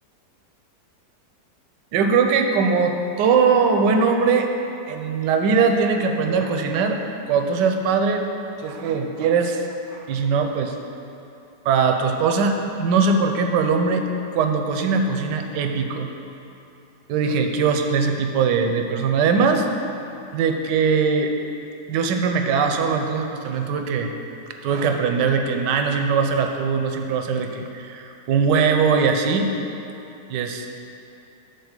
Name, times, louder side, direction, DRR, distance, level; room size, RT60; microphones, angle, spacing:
voice 1, 1.9-4.5 4.9-7.0 7.3-8.2 8.6-9.6 9.9-10.7 11.6-14.0 14.3-16.1 17.1-19.7 20.3-21.3 21.9-24.1 24.6-29.5 30.3-30.8, right 5 dB, 85° right, 5 dB, 1.3 m, -21 dB
8.1 x 4.4 x 6.5 m, 2.8 s
omnidirectional pair, 1.9 m